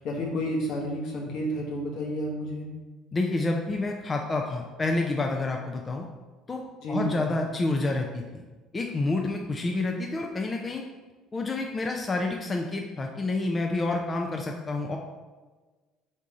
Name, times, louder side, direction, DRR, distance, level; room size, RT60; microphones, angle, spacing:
voice 1, 0.0-2.7 6.8-7.3, equal, 70° left, -1 dB, 1.1 m, -31 dB
voice 2, 3.1-6.1 6.5-6.6 6.9-8.2 8.7-10.8 11.3-15.0, left 2 dB, 25° left, 2 dB, 0.4 m, -28 dB
3.7 x 2.7 x 4.8 m, 1.3 s
supercardioid pair, 90°, 0 cm